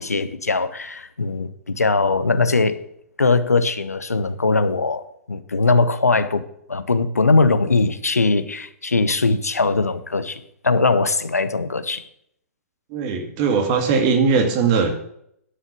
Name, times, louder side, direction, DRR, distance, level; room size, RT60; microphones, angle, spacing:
voice 1, 0.0-2.9 3.2-12.0, left 3 dB, 90° left, 12 dB, 0.8 m, -20 dB
voice 2, 12.9-14.9, right 5 dB, 40° right, 5 dB, 2.1 m, -19 dB
11.0 x 6.4 x 6.8 m, 0.73 s
figure-of-eight pair, 120°, 8 cm